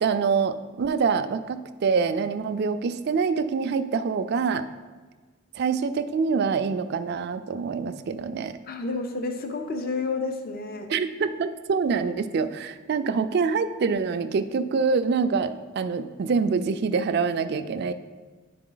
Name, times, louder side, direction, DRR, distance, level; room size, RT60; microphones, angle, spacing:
voice 1, 0.0-4.7 5.5-8.6 10.9-17.9, right 5 dB, 55° right, 11 dB, 0.3 m, -25 dB
voice 2, 8.6-10.9, left 3 dB, 45° left, 6 dB, 0.5 m, -30 dB
10.0 x 4.0 x 3.8 m, 1.4 s
head